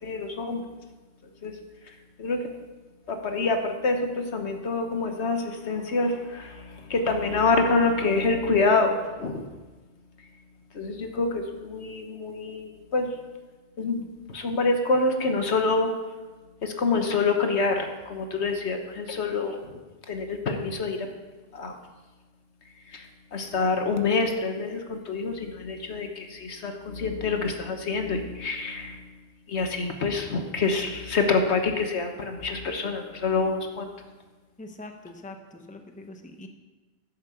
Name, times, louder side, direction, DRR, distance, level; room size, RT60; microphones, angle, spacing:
voice 1, 0.0-0.7 1.4-1.5 1.9-2.5 3.1-9.5 10.7-13.1 13.8-14.0 14.3-15.9 16.6-19.8 20.1-21.1 21.5-21.8 22.9-29.1 29.5-33.9, left 3 dB, 80° left, 5 dB, 1.5 m, -26 dB
voice 2, 34.6-36.5, left 2 dB, 10° left, 5 dB, 0.8 m, -43 dB
11.0 x 7.3 x 6.9 m, 1.2 s
omnidirectional pair, 1.1 m